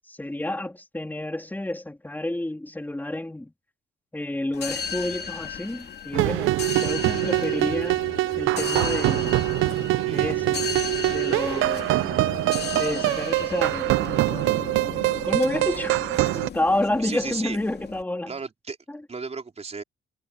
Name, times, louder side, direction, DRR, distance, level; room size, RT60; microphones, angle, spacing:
voice 1, 0.1-3.5 4.1-8.0 8.4-9.3 10.1-10.6 11.1-11.9 12.8-13.9 15.2-16.1 16.5-18.3 18.9-19.0, left 1 dB, 10° left, 3.0 m, -29 dB
sound 1, 4.5-18.0, left 6 dB, 55° left, 2.7 m, -35 dB
sound 2, 6.1-16.5, right 18 dB, 85° right, 0.5 m, -24 dB
voice 2, 9.9-10.4 17.0-17.6 18.3-18.8 19.1-19.8, right 4 dB, 35° right, 4.4 m, -34 dB
cardioid pair, 90°, 20 cm